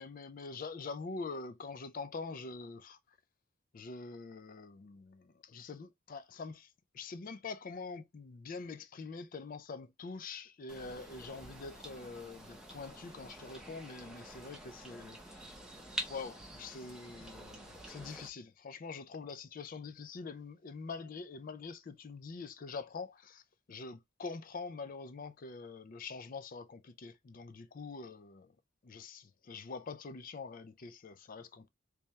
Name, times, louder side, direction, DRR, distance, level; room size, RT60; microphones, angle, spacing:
voice 1, 0.0-3.0 3.7-6.7 6.9-15.5 16.1-23.4 23.7-28.5 28.8-31.7, left 4 dB, 40° left, 0.4 m, -45 dB
sound 1, 10.7-18.3, right 1 dB, 5° right, 0.6 m, -47 dB
3.4 x 3.2 x 2.7 m
head